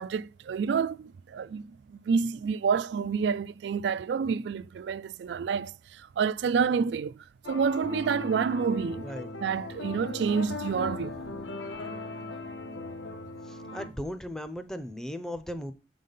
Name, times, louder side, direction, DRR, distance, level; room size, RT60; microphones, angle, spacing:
voice 1, 0.0-9.1 9.4-11.2, right 6 dB, 80° right, 0.3 m, -29 dB
sound 1, 7.4-13.9, left 2 dB, 90° left, 1.4 m, -38 dB
voice 2, 13.5-15.7, equal, 5° left, 0.5 m, -37 dB
7.3 x 4.0 x 5.3 m
head